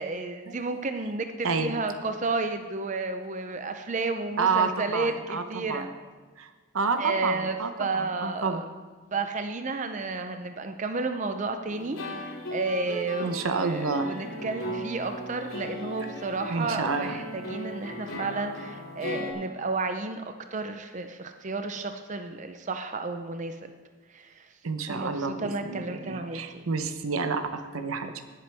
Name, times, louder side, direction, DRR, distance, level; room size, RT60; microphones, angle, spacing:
voice 1, 0.0-5.9 7.0-8.6 9.1-23.7 24.1-24.5 24.9-26.7, right 3 dB, 35° right, 7 dB, 0.5 m, -32 dB
voice 2, 4.4-5.9 6.4-6.5 6.7-8.6 13.2-14.1 16.5-17.1 24.6-28.2, right 4 dB, 85° right, 8 dB, 0.9 m, -29 dB
sound 1, 11.7-19.3, equal, 85° left, 3.0 m, -37 dB
18.5 x 7.9 x 3.4 m, 1.4 s
head